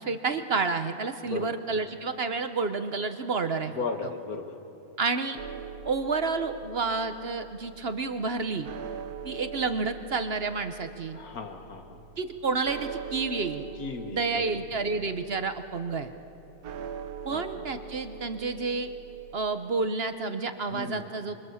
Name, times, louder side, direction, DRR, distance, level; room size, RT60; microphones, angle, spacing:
voice 1, 0.0-3.8 5.0-5.4 5.8-8.7 9.2-11.2 12.2-13.6 14.1-16.1 17.2-18.9 19.3-21.5, right 4 dB, 50° right, 9 dB, 1.0 m, -30 dB
voice 2, 3.7-4.6 11.1-12.0 13.8-14.5 17.3-17.6 20.7-21.1, left 4 dB, 80° left, 6 dB, 2.0 m, -36 dB
sound 1, 5.4-19.4, right 6 dB, 85° right, 1.5 m, -43 dB
25.5 x 24.0 x 7.2 m, 2.9 s
omnidirectional pair, 1.5 m